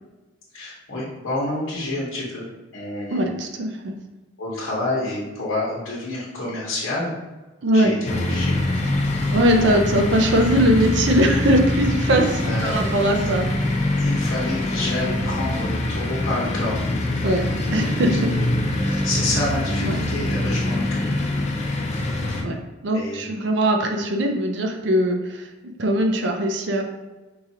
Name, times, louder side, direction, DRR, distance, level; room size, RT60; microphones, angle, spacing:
voice 1, 0.5-2.5 2.7-3.3 4.4-7.1 7.7-8.5 12.4-12.8 14.0-16.9 18.3-21.0 22.9-23.2, left 2 dB, 85° left, -7 dB, 0.9 m, -28 dB
voice 2, 3.1-3.9 7.6-8.0 9.3-13.5 17.2-18.3 18.9-19.1 19.8-20.0 22.4-26.8, right 1 dB, 60° right, 3 dB, 0.5 m, -21 dB
sound 1, 8.1-22.4, left 1 dB, 35° left, 0.4 m, -24 dB
4.7 x 2.5 x 2.8 m, 1.1 s
head